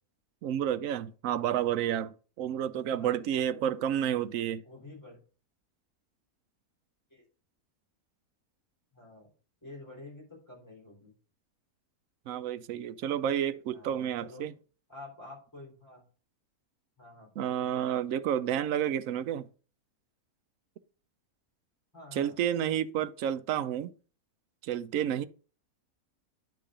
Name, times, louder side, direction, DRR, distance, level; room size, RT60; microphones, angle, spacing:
voice 1, 0.4-4.6 12.3-14.5 17.4-19.5 22.1-23.9 24.6-25.2, right 10 dB, 70° right, 0.9 m, -30 dB
voice 2, 2.7-4.2 4.6-5.2 7.1-7.2 8.9-9.3 9.6-11.1 13.7-14.5 14.9-16.0 17.0-17.7 21.9-22.4, left 2 dB, 10° left, 3.9 m, -49 dB
10.0 x 3.8 x 5.0 m
omnidirectional pair, 1.6 m